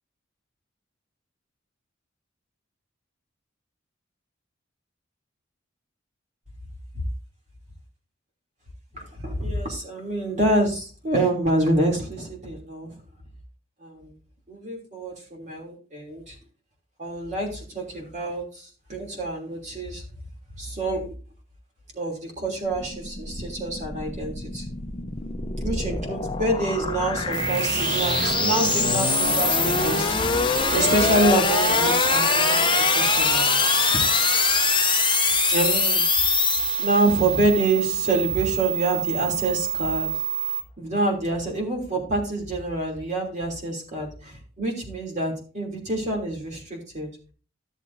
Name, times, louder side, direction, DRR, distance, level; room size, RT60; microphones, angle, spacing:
voice 1, 8.9-13.0 13.8-14.1 14.5-16.4 17.0-20.0 20.6-21.1 21.9-24.7 25.6-33.6 35.5-36.0 36.8-40.1 40.8-47.1, right 1 dB, 40° right, 0 dB, 3.1 m, -27 dB
sound 1, 22.7-37.2, left 6 dB, 25° left, 0.8 m, -24 dB
sound 2, 27.3-40.6, right 5 dB, 65° right, 1.3 m, -28 dB
14.0 x 7.1 x 2.7 m, 0.38 s
head